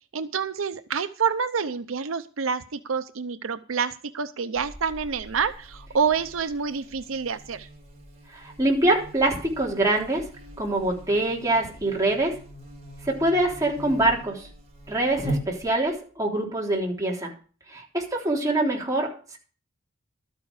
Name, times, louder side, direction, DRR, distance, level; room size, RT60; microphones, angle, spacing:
voice 1, 0.1-7.7, right 6 dB, 80° right, 10 dB, 0.6 m, -28 dB
Buzz, 4.6-16.0, right 1 dB, 35° right, 4.6 m, -40 dB
voice 2, 8.3-10.2 10.6-12.3 13.0-14.5 14.9-17.3 17.7-19.4, right 1 dB, 15° right, -2 dB, 3.6 m, -24 dB
13.0 x 9.2 x 4.9 m, 0.39 s
head